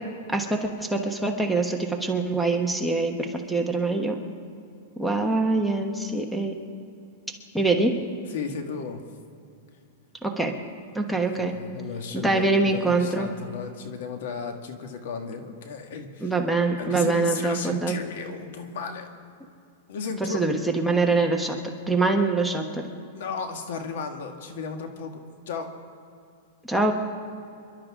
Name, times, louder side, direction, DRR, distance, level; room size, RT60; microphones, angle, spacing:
voice 1, 0.3-4.2 5.0-6.5 7.5-7.9 10.2-10.5 10.9-11.5 12.1-13.3 16.2-18.0 20.2-21.6 21.9-22.8 26.6-26.9, right 3 dB, ahead, 1 dB, 1.2 m, -24 dB
voice 2, 8.3-9.1 11.4-16.3 16.8-19.1 19.9-20.4 23.1-25.7, left 5 dB, 70° left, 5 dB, 1.8 m, -34 dB
27.5 x 11.5 x 3.7 m, 2.5 s
supercardioid pair, 155°, 0 cm